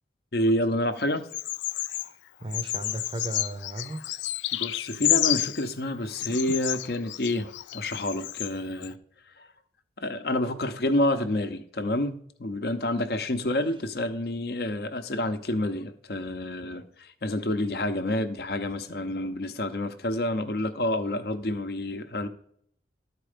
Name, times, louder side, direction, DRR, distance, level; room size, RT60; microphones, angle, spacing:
voice 1, 0.3-1.3 4.6-9.0 9.3-9.5 10.0-22.3, left 1 dB, 60° left, 9 dB, 0.7 m, -28 dB
Bird vocalization bird call bird song, 1.3-2.1 2.5-5.7 6.2-8.5 8.8-8.9, left 15 dB, 90° left, 0.3 m, -30 dB
voice 2, 1.9-4.0, right 1 dB, 30° right, 9 dB, 0.6 m, -36 dB
12.0 x 4.6 x 5.0 m, 0.67 s
head